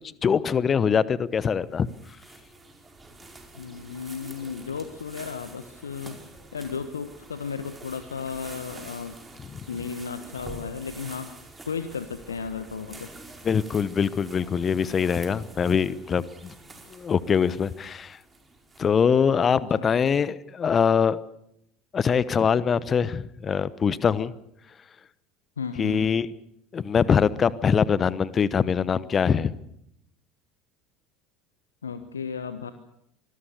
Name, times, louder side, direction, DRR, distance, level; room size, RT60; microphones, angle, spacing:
voice 1, 0.2-1.9 9.5-9.6 13.4-16.5 16.9-18.2 18.8-21.2 21.9-24.3 25.8-26.3 26.7-29.5, left 6 dB, 30° left, 19 dB, 1.1 m, -23 dB
sound 1, 1.4-19.2, right 2 dB, 15° right, 5.0 m, -47 dB
voice 2, 3.5-6.2 6.5-9.2 9.7-11.3 11.6-13.1 19.8-19.9 25.6-26.1 31.8-32.7, left 6 dB, 75° left, 11 dB, 1.2 m, -34 dB
25.5 x 20.5 x 6.8 m, 0.75 s
figure-of-eight pair, 70°, 0 cm